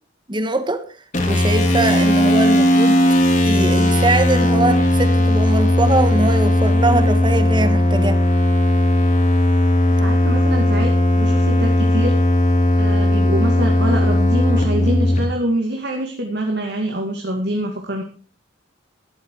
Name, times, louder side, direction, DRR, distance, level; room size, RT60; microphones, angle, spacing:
voice 1, 0.3-0.9 1.3-3.0 3.4-8.2, right 2 dB, 25° right, 1.5 m, -21 dB
sound 1, 1.1-15.2, left 1 dB, 40° left, 3.0 m, -16 dB
voice 2, 9.9-12.1 12.8-18.0, right 1 dB, 55° right, 2.2 m, -25 dB
14.0 x 11.5 x 4.7 m
head